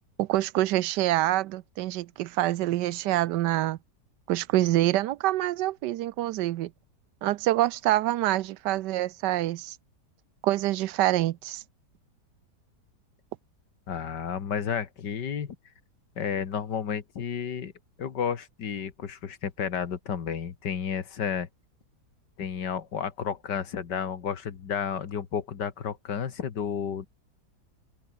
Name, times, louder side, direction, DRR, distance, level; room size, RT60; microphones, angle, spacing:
voice 1, 0.2-3.8 4.3-6.7 7.2-9.8 10.4-11.6, right 15 dB, 85° right, 1.3 m, -26 dB
voice 2, 13.9-15.6 16.2-17.7 18.0-21.5 22.4-27.1, left 7 dB, 90° left, 2.3 m, -32 dB
open air
omnidirectional pair, 1.8 m